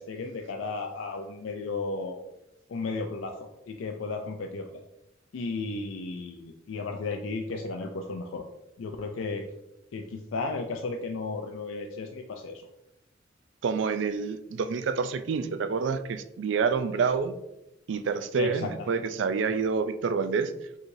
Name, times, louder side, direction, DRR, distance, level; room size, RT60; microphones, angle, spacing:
voice 1, 0.0-2.2 2.7-3.4 3.7-4.7 5.3-8.5 8.8-9.4 9.9-12.6 18.4-18.7, left 3 dB, 80° left, 3 dB, 0.4 m, -34 dB
voice 2, 13.6-17.3 17.9-20.5, right 5 dB, 65° right, 11 dB, 0.4 m, -28 dB
4.6 x 3.9 x 2.6 m, 0.88 s
head